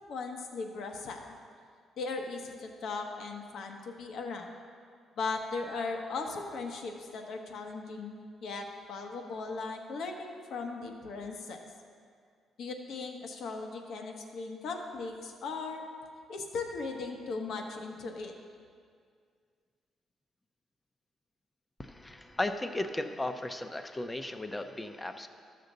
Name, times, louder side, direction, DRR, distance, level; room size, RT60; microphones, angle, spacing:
voice 1, 0.1-1.2 2.0-4.5 5.2-11.6 12.6-15.8 16.3-18.3, left 4 dB, 70° left, 3 dB, 1.0 m, -38 dB
voice 2, 21.8-25.3, left 2 dB, 15° left, 8 dB, 0.6 m, -35 dB
12.5 x 6.6 x 3.9 m, 2.1 s
cardioid pair, 90°, 0 cm